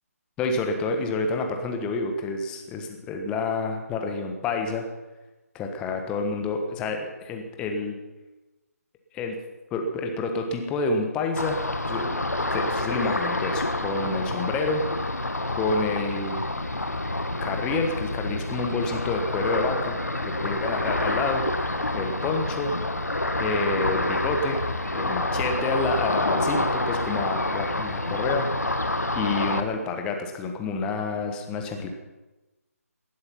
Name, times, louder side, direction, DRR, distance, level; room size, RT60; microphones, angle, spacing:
voice 1, 0.4-4.9 5.5-7.9 9.1-9.4 9.7-11.6 11.8-12.2 12.5-14.8 15.6-16.4 17.4-20.0 20.4-21.4 21.9-22.7 23.4-24.6 24.9-28.5 29.1-31.9, left 3 dB, 10° left, 4 dB, 1.4 m, -28 dB
Ocean, 11.4-29.6, left 2 dB, 75° left, 1.5 m, -28 dB
19.0 x 11.5 x 5.7 m, 1.1 s
figure-of-eight pair, 150°, 9 cm